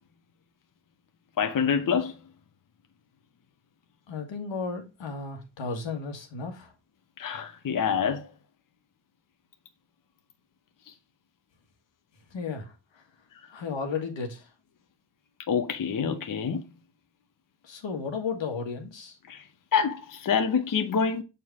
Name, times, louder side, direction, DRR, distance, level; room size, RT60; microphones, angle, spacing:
voice 1, 1.4-2.1 7.2-8.3 15.5-16.6 19.3-19.4 19.7-21.2, left 6 dB, 45° left, 0.8 m, -26 dB
voice 2, 4.1-6.7 12.3-13.0 13.5-14.5 17.6-19.1, left 5 dB, 85° left, 1.8 m, -34 dB
6.8 x 4.4 x 3.5 m
cardioid pair, 90°, 44 cm